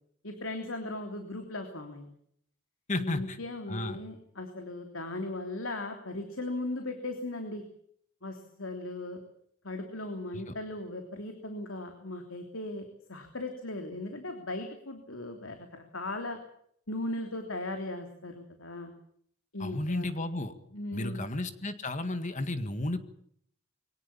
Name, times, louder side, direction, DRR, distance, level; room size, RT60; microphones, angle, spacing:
voice 1, 0.2-2.1 2.9-7.6 8.2-9.2 9.6-16.4 16.9-18.9 19.5-20.1 20.7-21.2, left 2 dB, 85° left, 5 dB, 3.2 m, -38 dB
voice 2, 2.9-3.4 3.7-4.0 19.6-20.5 20.9-23.0, left 2 dB, 40° left, 10 dB, 1.9 m, -33 dB
23.0 x 19.0 x 7.1 m, 0.67 s
head